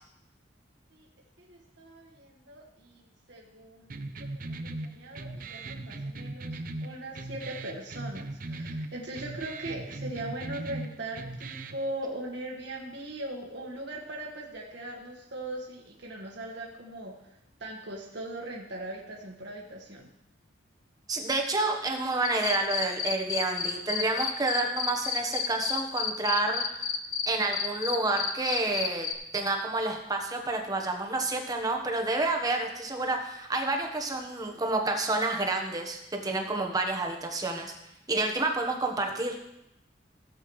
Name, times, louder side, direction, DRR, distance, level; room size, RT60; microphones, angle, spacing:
voice 1, 1.4-17.3 17.6-20.1, right 1 dB, 65° right, -2 dB, 1.6 m, -40 dB
sound 1, 3.9-11.9, right 2 dB, 45° right, 0.6 m, -39 dB
voice 2, 21.1-26.9 27.3-29.1 29.3-37.7 38.1-39.4, right 2 dB, 20° right, 2 dB, 1.2 m, -29 dB
sound 2, 22.2-27.3 27.5-29.1, left 7 dB, 45° left, 0.7 m, -30 dB
16.0 x 7.9 x 3.2 m, 0.84 s
head